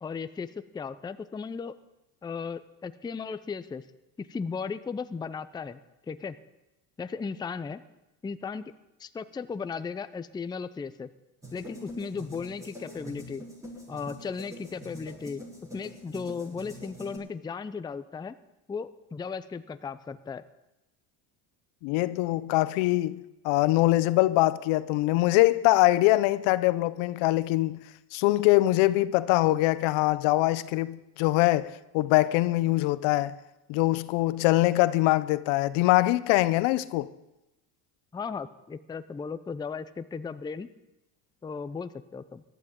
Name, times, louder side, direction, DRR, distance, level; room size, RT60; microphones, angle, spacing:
voice 1, 0.0-1.7 2.2-3.9 4.2-5.8 6.1-6.4 7.0-7.8 8.2-8.7 9.0-11.1 11.5-13.4 13.9-15.4 15.7-18.4 18.7-20.4 38.1-40.7 41.4-42.4, left 5 dB, 10° left, 0.4 m, -36 dB
sound 1, 11.4-17.2, equal, 5° right, 6.8 m, -44 dB
voice 2, 21.8-27.8 28.1-33.4 33.7-37.1, left 18 dB, 75° left, 0.7 m, -23 dB
18.5 x 12.5 x 3.7 m
supercardioid pair, 90°, 48 cm